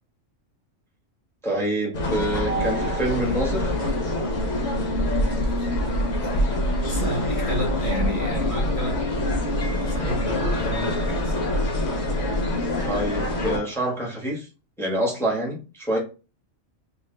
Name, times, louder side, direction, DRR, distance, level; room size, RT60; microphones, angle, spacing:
voice 1, 1.4-3.7 12.8-14.5 14.8-16.0, right 1 dB, ahead, 0.9 m, -26 dB
sound 1, 1.9-13.6, left 1 dB, 65° left, 1.3 m, -25 dB
voice 2, 5.2-6.4 6.8-9.0 9.6-11.4, right 1 dB, 45° right, 0.9 m, -33 dB
3.7 x 2.5 x 3.1 m
omnidirectional pair, 1.4 m